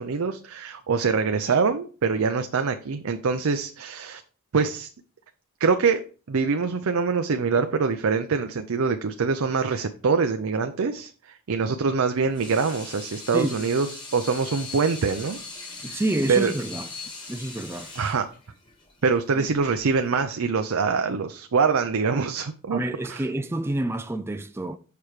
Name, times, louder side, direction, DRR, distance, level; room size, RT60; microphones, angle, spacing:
voice 1, 0.0-4.2 4.5-4.9 5.6-15.4 15.8-16.0 16.3-16.5 18.0-18.3 19.0-22.8 23.1-23.2, right 5 dB, 80° right, 0.5 m, -24 dB
Water tap faucet / Sink (filling or washing), 12.2-20.2, left 3 dB, 20° left, 1.9 m, -40 dB
voice 2, 13.3-13.7 15.8-16.9 17.3-17.9 19.3-19.5 22.7-24.8, right 1 dB, 10° right, 0.3 m, -28 dB
6.8 x 5.7 x 3.2 m
head